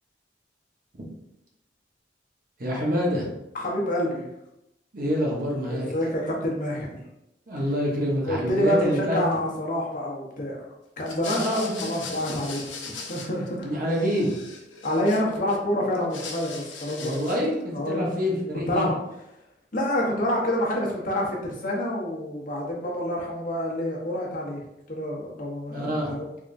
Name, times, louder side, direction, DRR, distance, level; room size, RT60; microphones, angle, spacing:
voice 1, 2.6-3.4 4.9-5.9 7.5-9.2 11.3-12.1 13.6-14.3 17.0-18.9 25.7-26.2, equal, 50° right, -2 dB, 1.0 m, -27 dB
voice 2, 3.5-4.3 5.7-6.9 8.3-10.6 11.0-13.7 14.8-17.1 17.7-18.1 18.7-19.0 19.7-24.6 24.9-26.2, left 1 dB, 50° left, -2 dB, 0.9 m, -27 dB
sound 1, 11.0-13.6 13.9-15.6 15.9-17.5, left 4 dB, 80° left, 0.6 m, -39 dB
3.6 x 3.4 x 2.6 m, 0.87 s
head